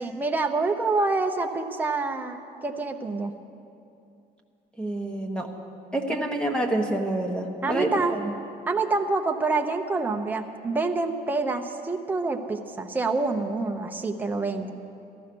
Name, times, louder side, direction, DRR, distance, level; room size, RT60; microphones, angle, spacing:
voice 1, 0.0-3.3 6.1-6.3 7.6-8.2 8.7-14.8, right 3 dB, 10° right, 3 dB, 0.7 m, -27 dB
voice 2, 4.8-5.5 5.9-8.3, right 1 dB, 5° left, 3 dB, 1.1 m, -27 dB
14.5 x 13.5 x 6.1 m, 2.6 s
cardioid pair, 150°, 17 cm